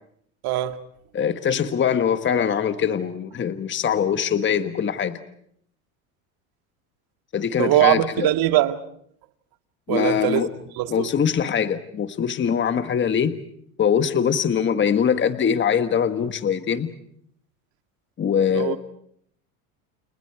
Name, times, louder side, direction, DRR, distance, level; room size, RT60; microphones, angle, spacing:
voice 1, 0.4-0.8 7.6-8.8 9.9-10.4 10.8-11.1 18.5-18.8, right 14 dB, 55° right, 2.0 m, -21 dB
voice 2, 1.1-5.2 7.3-8.3 9.9-10.5 10.9-13.4 13.8-16.9 18.2-18.8, left 7 dB, 25° left, 1.4 m, -22 dB
30.0 x 30.0 x 4.8 m
supercardioid pair, 105°, 43 cm